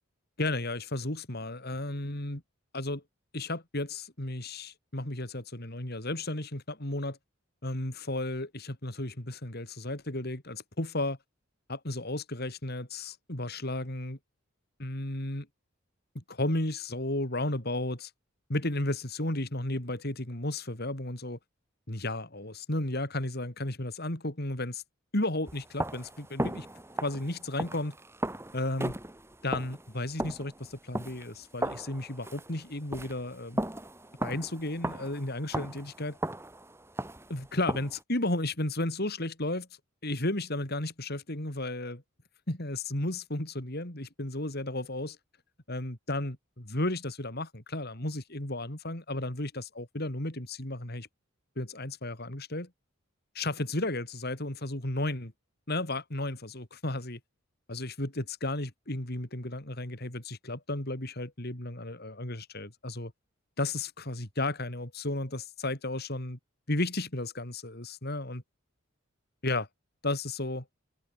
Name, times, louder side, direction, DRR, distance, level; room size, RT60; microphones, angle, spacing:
voice 1, 0.4-2.4 2.7-3.0 3.3-7.2 7.6-11.2 11.7-14.2 14.8-15.5 16.2-18.1 18.5-21.4 21.9-24.8 25.1-26.7 27.0-28.0 28.5-28.9 29.4-33.6 34.2-36.2 37.3-39.7 40.0-42.0 42.5-45.2 45.7-51.1 51.6-52.7 53.4-55.3 55.7-57.2 57.7-63.1 63.6-66.4 66.7-68.4 69.4-69.7 70.0-70.6, left 1 dB, 50° left, 3.7 m, -33 dB
sound 1, 25.5-38.0, right 1 dB, 10° right, 1.6 m, -36 dB
head